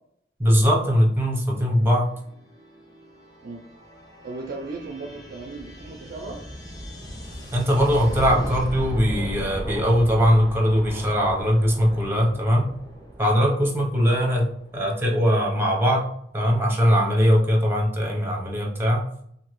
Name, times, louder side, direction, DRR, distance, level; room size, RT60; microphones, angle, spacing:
voice 1, 0.4-2.1 7.5-12.7 13.2-16.1 16.3-19.0, equal, 15° right, -2 dB, 0.7 m, -21 dB
sound 1, 1.7-15.2, equal, 20° left, 0.9 m, -37 dB
voice 2, 4.2-6.4 14.1-14.3 18.0-18.1, right 3 dB, 50° right, 3 dB, 0.4 m, -36 dB
2.9 x 2.6 x 3.0 m, 0.69 s
head